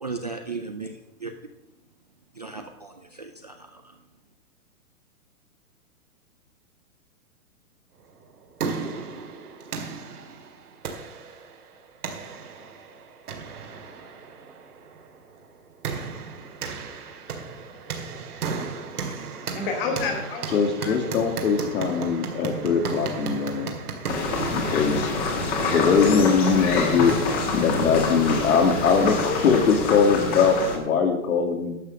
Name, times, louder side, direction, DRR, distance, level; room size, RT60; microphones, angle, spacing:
voice 1, 0.0-1.3 2.4-3.8, right 4 dB, 30° right, 5 dB, 0.3 m, -36 dB
sound 1, 8.2-27.4, right 5 dB, 80° right, 2.3 m, -35 dB
voice 2, 19.5-21.3 21.8-22.1, left 4 dB, 35° left, 3 dB, 2.8 m, -31 dB
voice 3, 20.5-23.8 24.5-25.1 25.7-27.2 27.5-31.8, left 5 dB, 65° left, 4 dB, 2.3 m, -21 dB
sound 2, 24.1-30.8, left 3 dB, 20° left, 1.6 m, -27 dB
11.5 x 6.1 x 6.4 m, 0.95 s
hypercardioid pair, 160°, 45 cm